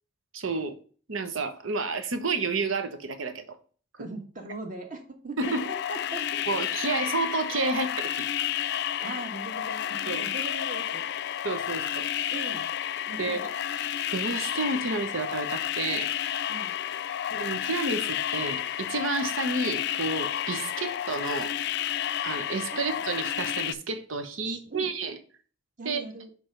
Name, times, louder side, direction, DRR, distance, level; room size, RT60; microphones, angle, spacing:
voice 1, 0.3-0.8 1.1-3.4 5.4-5.6 6.5-8.3 10.1-10.2 11.4-12.4 13.2-13.4 14.1-16.1 17.3-21.5 22.2-25.2 25.8-26.0, right 3 dB, 85° right, 0.9 m, -30 dB
voice 2, 4.0-6.3 9.0-11.1 12.3-12.7 13.1-13.5 16.5-16.7 22.7-22.9 24.4-24.9 25.8-26.3, right 2 dB, 40° right, 1.3 m, -40 dB
sound 1, 5.4-23.7, left 11 dB, 55° left, 0.3 m, -31 dB
6.1 x 3.4 x 5.0 m
head